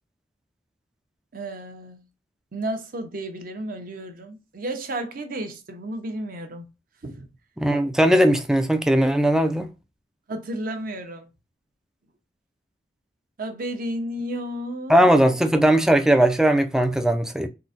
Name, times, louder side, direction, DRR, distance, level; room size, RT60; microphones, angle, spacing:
voice 1, 1.3-2.0 2.5-6.7 7.0-7.3 10.3-11.3 13.4-15.1, right 1 dB, 50° right, 0.6 m, -32 dB
voice 2, 7.6-9.7 14.9-17.5, right 1 dB, 5° right, 0.3 m, -19 dB
3.8 x 2.1 x 2.4 m
head